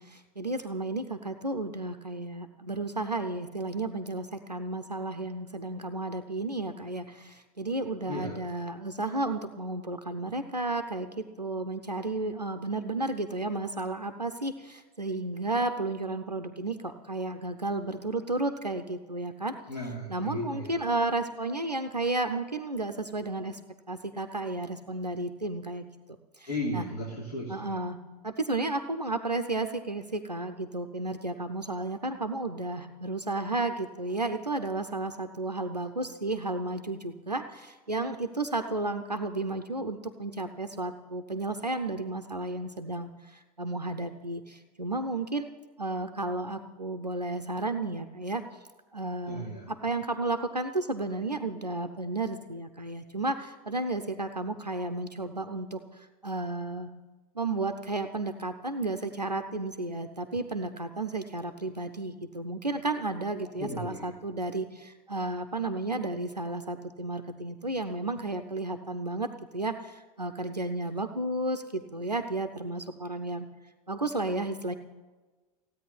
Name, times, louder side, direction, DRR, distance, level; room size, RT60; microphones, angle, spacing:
voice 1, 0.0-19.6 20.1-23.6 23.9-25.8 26.4-26.5 26.7-26.8 27.5-28.0 28.2-45.5 45.8-48.4 48.9-56.9 57.3-73.5 73.9-74.7, right 2 dB, 90° right, 8 dB, 0.8 m, -33 dB
voice 2, 8.1-8.4 19.7-20.8 26.5-27.7 49.3-49.7 63.6-64.1, equal, 70° left, -3 dB, 3.6 m, -35 dB
16.5 x 9.2 x 9.5 m, 1.2 s
figure-of-eight pair, 80°, 20 cm